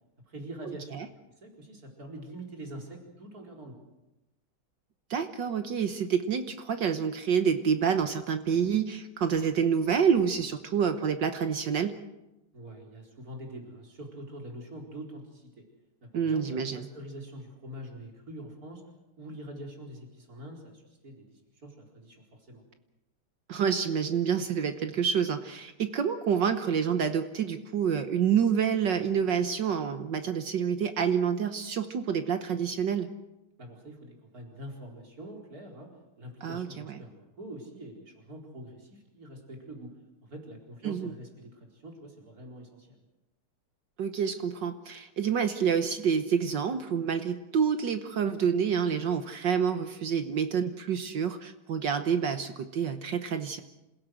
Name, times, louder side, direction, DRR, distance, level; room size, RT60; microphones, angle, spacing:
voice 1, 0.3-0.9 1.4-3.8 12.5-15.6 16.0-18.8 19.2-22.6 33.6-35.9 36.2-39.9 40.2-43.0, right 1 dB, 40° right, 1 dB, 4.8 m, -44 dB
voice 2, 5.1-11.9 16.1-16.8 23.5-33.1 36.4-36.9 40.8-41.1 44.0-53.6, right 7 dB, 60° right, 9 dB, 1.6 m, -28 dB
27.5 x 16.5 x 7.8 m, 0.96 s
omnidirectional pair, 2.3 m